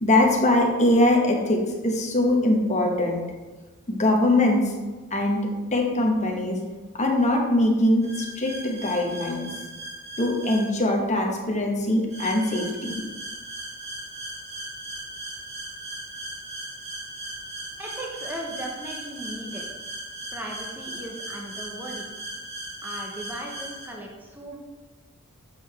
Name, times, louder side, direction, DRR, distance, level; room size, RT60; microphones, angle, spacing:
voice 1, 0.0-3.2 3.9-4.6 5.1-6.6 7.0-8.1 8.4-9.5 10.2-12.9, left 1 dB, 35° left, 0 dB, 1.2 m, -22 dB
sound 1, 8.0-10.7 12.1-23.9, right 1 dB, 30° right, 1.4 m, -38 dB
voice 2, 17.8-19.7 20.3-22.1 22.8-24.6, right 1 dB, 10° right, -1 dB, 0.8 m, -37 dB
7.7 x 5.6 x 3.3 m, 1.3 s
head